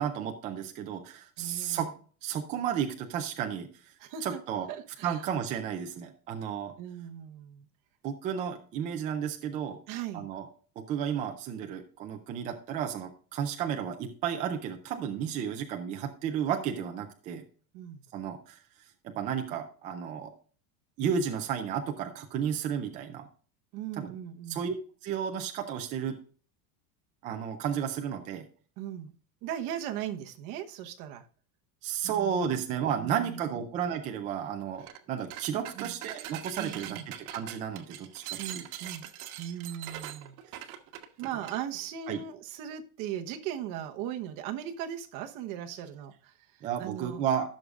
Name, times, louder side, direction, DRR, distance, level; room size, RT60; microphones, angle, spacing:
voice 1, 0.0-1.9 2.2-3.9 4.2-4.7 5.0-6.7 8.0-9.8 10.1-10.5 10.9-17.4 18.1-18.6 19.0-20.3 21.0-23.3 24.0-24.1 24.5-24.7 25.0-26.2 27.2-28.5 31.8-37.0 37.3-38.7 42.1-42.2 46.6-47.5, right 8 dB, 20° right, 4 dB, 0.3 m, -33 dB
voice 2, 1.4-1.9 4.0-4.4 4.7-5.2 6.8-7.7 9.9-10.3 17.7-18.0 23.7-24.6 28.8-29.1 29.4-31.3 32.0-32.6 33.0-33.6 35.5-35.9 36.6-37.1 38.4-39.1 39.4-40.4 41.2-47.2, right 10 dB, 45° right, 5 dB, 1.1 m, -38 dB
sound 1, 34.8-35.0 35.3-41.6, right 12 dB, 75° right, 1.2 m, -42 dB
16.0 x 6.4 x 2.4 m, 0.41 s
cardioid pair, 165°, 43 cm